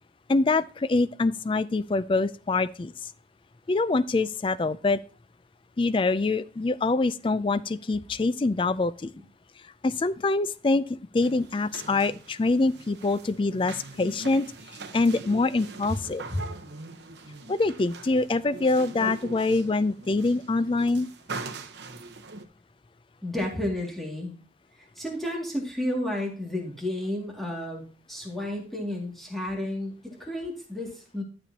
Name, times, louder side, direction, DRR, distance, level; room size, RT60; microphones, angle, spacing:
voice 1, 0.3-2.9 3.7-5.0 5.8-9.1 9.8-14.5 14.9-16.2 17.5-21.1, left 3 dB, 25° left, 0.3 m, -25 dB
sound 1, 11.2-22.5, right 3 dB, 65° right, 1.0 m, -42 dB
voice 2, 23.2-24.3 24.8-31.2, left 1 dB, ahead, 2.1 m, -32 dB
12.0 x 7.0 x 2.8 m
head